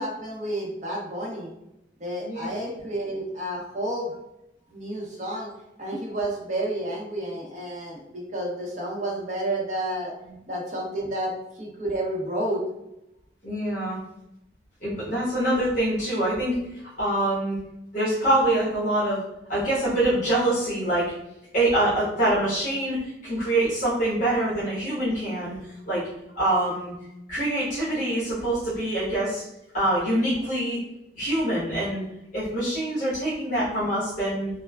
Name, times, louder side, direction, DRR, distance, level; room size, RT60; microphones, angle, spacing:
voice 1, 0.0-1.5 2.0-4.1 4.7-5.5 5.8-10.1 10.5-12.6, right 1 dB, 40° right, -2 dB, 0.7 m, -30 dB
voice 2, 2.2-2.5 13.4-14.0 14.8-16.6 16.8-17.6 17.9-19.2 19.5-21.1 21.5-25.5 25.9-26.0 26.3-26.9 27.3-29.4 29.7-30.8 31.1-32.0 32.3-34.5, right 1 dB, 45° left, -10 dB, 1.1 m, -25 dB
3.1 x 2.1 x 2.3 m, 0.87 s
head